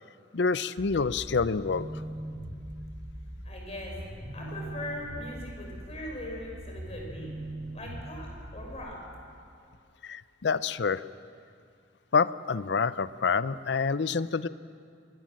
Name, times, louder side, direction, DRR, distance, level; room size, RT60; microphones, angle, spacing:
voice 1, 0.3-1.9 10.0-11.0 12.1-14.5, left 5 dB, 65° left, 16 dB, 0.6 m, -27 dB
sound 1, 0.8-8.8, right 1 dB, 40° right, 5.3 m, -41 dB
voice 2, 3.4-3.9 4.3-7.3 7.7-8.9, left 1 dB, 35° left, -1 dB, 5.7 m, -40 dB
23.0 x 19.0 x 7.6 m, 2.4 s
head